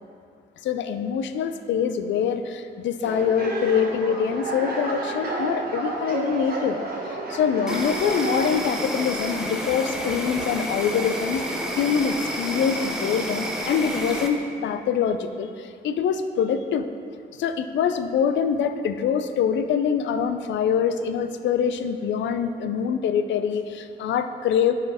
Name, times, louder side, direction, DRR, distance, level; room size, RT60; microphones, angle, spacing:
voice 1, 0.6-6.8 7.3-11.4 11.7-15.5 15.8-16.9 17.4-24.7, left 7 dB, 70° left, 10 dB, 0.4 m, -24 dB
sound 1, 3.0-8.5, right 2 dB, 50° right, 1.3 m, -30 dB
Insect, 7.7-14.3, equal, 5° right, 0.8 m, -30 dB
9.3 x 4.4 x 3.5 m, 2.3 s
cardioid pair, 90°, 20 cm